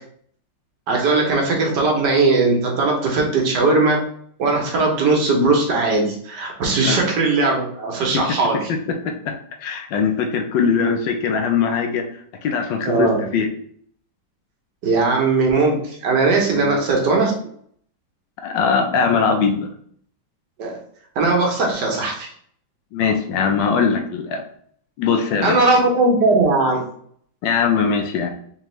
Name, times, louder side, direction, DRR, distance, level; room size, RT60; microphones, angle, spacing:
voice 1, 0.9-4.0 4.4-8.7 12.9-13.2 14.8-17.3 20.6-20.7 21.2-22.3 25.4-26.8, right 3 dB, 65° right, 0 dB, 1.3 m, -19 dB
voice 2, 9.0-9.4 9.6-13.5 16.5-16.8 18.4-19.7 22.9-24.4 25.0-25.6 27.4-28.3, left 6 dB, 75° left, 5 dB, 1.2 m, -21 dB
3.5 x 3.4 x 3.1 m, 0.62 s
omnidirectional pair, 2.1 m